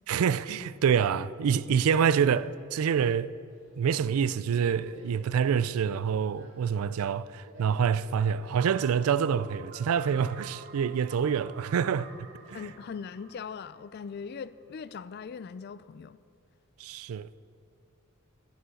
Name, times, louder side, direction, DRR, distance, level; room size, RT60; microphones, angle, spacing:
voice 1, 0.1-3.3 3.8-12.1 12.5-12.6 16.8-17.3, right 7 dB, 90° right, 0.4 m, -26 dB
Subway metro underground, 3.5-13.2, equal, 65° right, 2.8 m, -55 dB
sound 1, 8.3-14.2, right 4 dB, 45° right, 1.1 m, -49 dB
voice 2, 12.5-16.2, left 6 dB, 50° left, 0.3 m, -40 dB
10.0 x 8.1 x 7.7 m
head